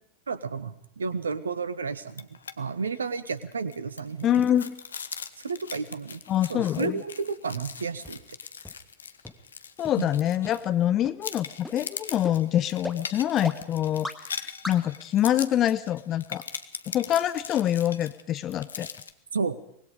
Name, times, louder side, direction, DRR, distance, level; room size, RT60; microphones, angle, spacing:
voice 1, 0.3-2.3 2.6-4.4 5.4-6.2 6.5-8.2 10.0-10.1 19.3-19.6, right 5 dB, 70° right, 16 dB, 1.4 m, -31 dB
sound 1, 2.1-2.6 2.9-3.0 3.4-10.8 11.2-19.1, left 6 dB, 70° left, 1.3 m, -40 dB
voice 2, 4.2-4.7 6.3-7.0 9.8-16.4 16.9-18.9, left 11 dB, 30° left, 14 dB, 0.9 m, -25 dB
sound 2, 8.0-8.1 8.6-8.7 9.2-9.3 9.8-9.9 10.4-10.5 11.0-11.1 11.6-11.7 12.2-12.3 12.8-12.9 13.4-13.5 14.0-14.1 14.6-14.7, left 1 dB, ahead, 2.0 m, -35 dB
24.5 x 20.5 x 5.2 m, 0.71 s
figure-of-eight pair, 90°, 0 cm